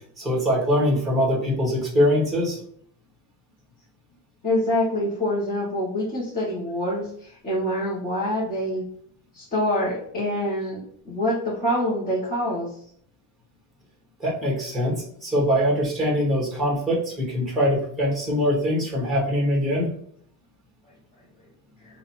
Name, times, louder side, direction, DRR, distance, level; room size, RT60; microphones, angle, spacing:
voice 1, 0.2-2.6 14.2-19.9, equal, ahead, -3 dB, 1.8 m, -23 dB
voice 2, 4.4-7.0 7.4-8.8 9.3-10.8 11.1-12.7, left 1 dB, 20° left, -9 dB, 1.5 m, -25 dB
4.0 x 2.8 x 4.2 m, 0.64 s
cardioid pair, 135°, 43 cm